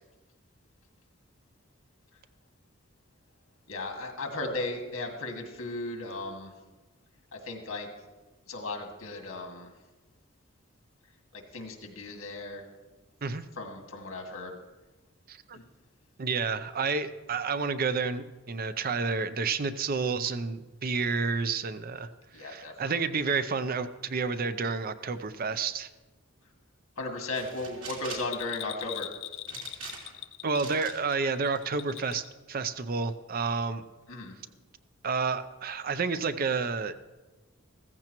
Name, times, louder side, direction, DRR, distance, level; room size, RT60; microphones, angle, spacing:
voice 1, 3.7-6.5 7.5-7.9 8.5-9.7 11.3-12.6 13.6-14.6 15.5-15.6 22.3-22.9 27.0-29.1 34.1-34.3, left 2 dB, 85° left, 3 dB, 2.0 m, -36 dB
voice 2, 15.3-15.6 16.2-22.1 22.4-25.9 30.4-33.8 35.0-36.9, right 4 dB, 45° right, 11 dB, 0.5 m, -30 dB
sound 1, 27.3-28.3 29.5-30.2 30.6-31.0 31.5-32.1, right 5 dB, 65° right, 3.1 m, -43 dB
Bell, 28.2-32.3 32.6-32.7, left 13 dB, 65° left, 0.6 m, -41 dB
15.5 x 14.5 x 3.0 m, 1.2 s
head